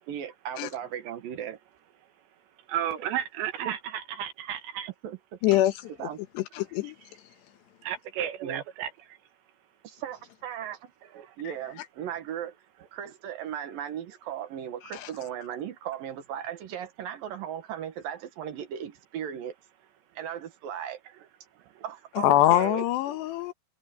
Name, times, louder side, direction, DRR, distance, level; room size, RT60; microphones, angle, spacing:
voice 1, 0.1-1.6 3.6-3.8 5.0-5.4 6.0-6.2 8.4-8.6 9.8-10.9 11.4-12.5 12.9-19.5 20.2-21.0 21.8-22.9, right 9 dB, 65° right, 2.9 m, -37 dB
voice 2, 2.7-4.9 5.5-5.6 7.8-8.9 11.1-11.4 21.8-21.9, right 10 dB, 85° right, 4.2 m, -33 dB
voice 3, 5.4-5.7 6.4-7.0 14.9-15.1 22.2-23.5, left 14 dB, 85° left, 3.4 m, -23 dB
omnidirectional pair, 4.9 m